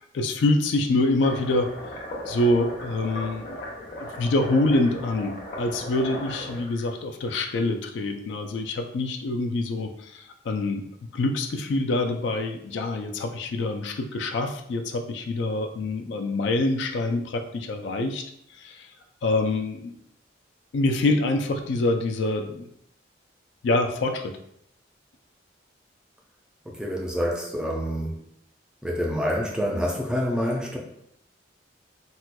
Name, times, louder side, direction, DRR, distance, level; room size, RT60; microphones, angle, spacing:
voice 1, 0.1-1.7 2.3-3.6 4.0-10.8 11.1-18.9 19.2-19.9 20.7-22.7 23.6-24.4, left 2 dB, 70° left, 5 dB, 0.4 m, -26 dB
sound 1, 1.2-6.8, left 1 dB, 50° left, 0.9 m, -37 dB
voice 2, 26.7-28.2 28.8-30.8, equal, 5° right, -2 dB, 0.4 m, -27 dB
4.1 x 2.2 x 2.2 m, 0.73 s
head